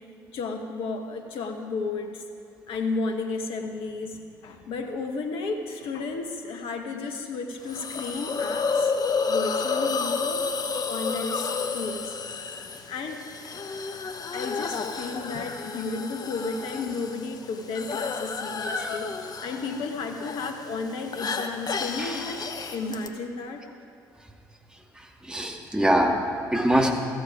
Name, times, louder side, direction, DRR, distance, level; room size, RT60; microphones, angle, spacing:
voice 1, 0.3-2.2 2.7-8.9 9.3-10.5 10.8-12.2 12.9-13.2 14.3-23.6, left 3 dB, 55° left, 4 dB, 1.2 m, -33 dB
Hiss, 7.7-23.1, left 5 dB, 35° left, 1.1 m, -31 dB
voice 2, 18.6-19.0 22.0-22.2 25.2-26.9, right 1 dB, 10° right, 0 dB, 2.4 m, -24 dB
14.0 x 14.0 x 5.0 m, 2.6 s
figure-of-eight pair, 55°, 11 cm